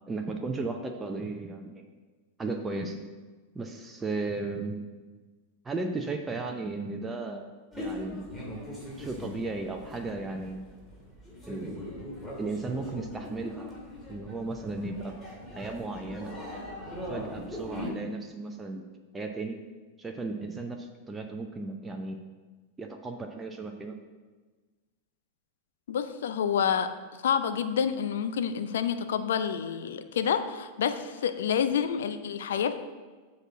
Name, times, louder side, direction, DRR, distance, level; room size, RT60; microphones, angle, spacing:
voice 1, 0.1-1.9 2.4-3.0 3.5-4.9 5.6-7.5 7.8-8.3 9.0-10.6 11.5-11.8 12.4-13.7 14.1-15.2 15.5-16.4 17.1-18.8 19.1-19.6 20.0-22.2 22.8-24.0, right 3 dB, 15° right, 3 dB, 0.6 m, -35 dB
sound 1, 7.7-17.9, left 1 dB, 10° left, 2.5 m, -41 dB
voice 2, 25.9-26.9 27.2-32.8, left 7 dB, 60° left, 10 dB, 0.5 m, -28 dB
7.9 x 4.3 x 6.1 m, 1.3 s
figure-of-eight pair, 90°, 0 cm